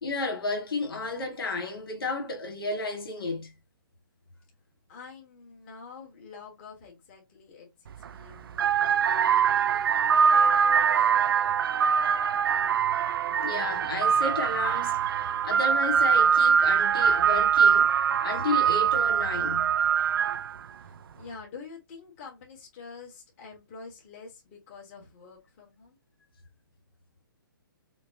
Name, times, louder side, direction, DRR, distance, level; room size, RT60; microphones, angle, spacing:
voice 1, 0.0-3.5 13.4-15.0 15.4-17.9 18.2-19.7, left 3 dB, 80° left, 1.6 m, -32 dB
voice 2, 4.9-9.6 20.8-25.9, left 5 dB, 30° left, 1.3 m, -47 dB
sound 1, 7.9-8.1 8.5-20.6, right 7 dB, 80° right, 0.4 m, -23 dB
5.1 x 2.1 x 2.6 m
hypercardioid pair, 160°, 12 cm